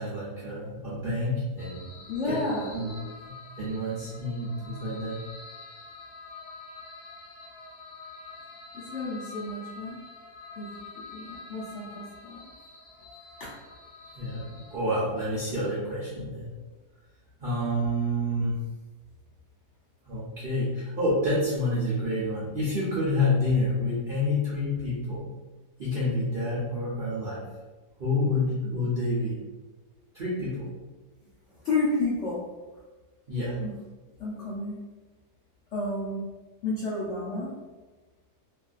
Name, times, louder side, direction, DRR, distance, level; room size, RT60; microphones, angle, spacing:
voice 1, 0.0-1.9 2.3-2.4 2.7-3.0 3.6-5.2 14.2-16.5 17.4-18.6 20.0-25.3 25.8-27.4 28.0-29.4 30.1-30.7 33.3-33.6, left 1 dB, 65° right, -8 dB, 0.5 m, -28 dB
sound 1, 1.6-14.8, left 3 dB, 85° left, 1.3 m, -46 dB
voice 2, 2.1-2.7 8.7-10.0 10.6-12.4 13.4-13.5 31.6-32.5 33.6-33.8 34.2-34.8 35.7-36.3 36.6-37.5, left 2 dB, 65° left, -7 dB, 0.7 m, -31 dB
3.1 x 2.6 x 2.4 m, 1.2 s
omnidirectional pair, 1.8 m